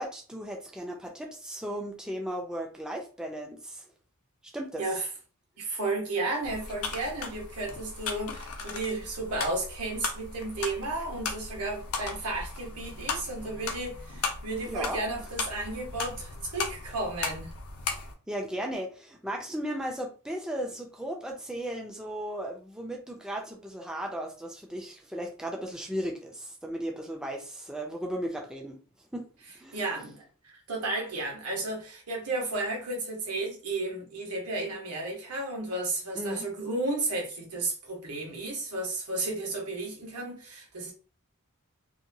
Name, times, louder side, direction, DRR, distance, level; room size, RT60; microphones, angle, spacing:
voice 1, 0.0-3.8 4.5-4.8 14.6-15.0 17.9-28.8 29.1-29.3 29.6-29.8 36.1-36.5, equal, 5° right, 0.4 m, -36 dB
voice 2, 5.6-17.5 29.7-40.9, right 2 dB, 85° right, 1.1 m, -33 dB
sound 1, 6.4-18.1, left 4 dB, 70° left, 0.6 m, -37 dB
2.8 x 2.2 x 2.6 m
head